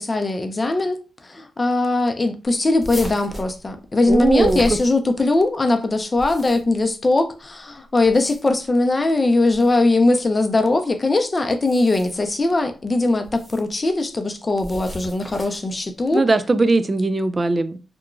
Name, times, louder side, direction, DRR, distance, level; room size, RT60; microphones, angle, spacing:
voice 1, 0.0-16.2, left 2 dB, 35° left, 0.5 m, -20 dB
sound 1, 2.8-5.4 6.0-6.8 8.0-8.7 9.5-9.7 11.5-12.3 13.2-13.7 14.6-15.8, equal, 10° left, 0.9 m, -35 dB
voice 2, 4.1-4.6 16.1-17.8, right 3 dB, 35° right, 0.3 m, -19 dB
2.9 x 2.2 x 2.5 m
cardioid pair, 60°, 0 cm